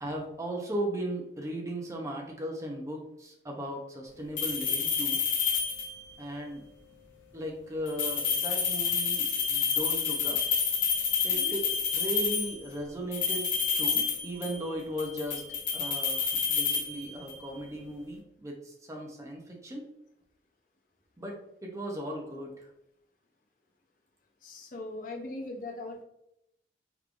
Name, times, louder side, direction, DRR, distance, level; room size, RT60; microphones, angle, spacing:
voice 1, 0.0-5.2 6.2-6.6 7.3-10.4 11.2-11.7 11.9-13.5 13.8-15.4 15.7-19.8 21.2-22.7, right 1 dB, 15° right, 0 dB, 0.6 m, -37 dB
sound 1, 4.4-6.1 7.9-12.6 13.1-14.7 15.0-17.5, left 6 dB, 90° left, 0.7 m, -29 dB
voice 2, 24.4-26.0, left 2 dB, 45° left, 1 dB, 0.6 m, -40 dB
3.5 x 3.2 x 2.5 m, 0.79 s
head